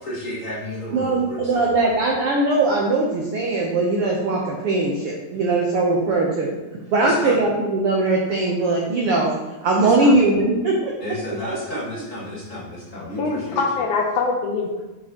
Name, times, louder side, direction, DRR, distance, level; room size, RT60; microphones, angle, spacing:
voice 1, 0.0-2.0 7.0-7.5 9.8-10.3 11.0-13.9, left 1 dB, 25° left, -6 dB, 1.9 m, -32 dB
voice 2, 0.9-6.5 6.9-9.3 9.6-10.9, right 2 dB, 75° right, -1 dB, 1.3 m, -20 dB
voice 3, 13.2-14.8, left 4 dB, 70° left, 1 dB, 2.0 m, -23 dB
8.3 x 7.4 x 3.0 m, 1.1 s
omnidirectional pair, 3.9 m